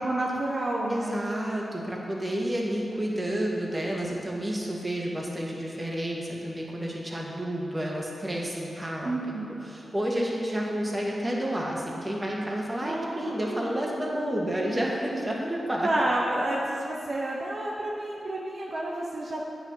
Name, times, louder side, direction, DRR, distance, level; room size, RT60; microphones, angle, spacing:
voice 1, 0.0-1.2 9.0-9.5 12.8-13.8 15.8-19.5, right 1 dB, 55° right, -3 dB, 1.0 m, -30 dB
voice 2, 0.9-15.9, right 1 dB, 25° right, -2 dB, 1.9 m, -30 dB
8.8 x 6.3 x 5.7 m, 2.6 s
cardioid pair, 55°, 0 cm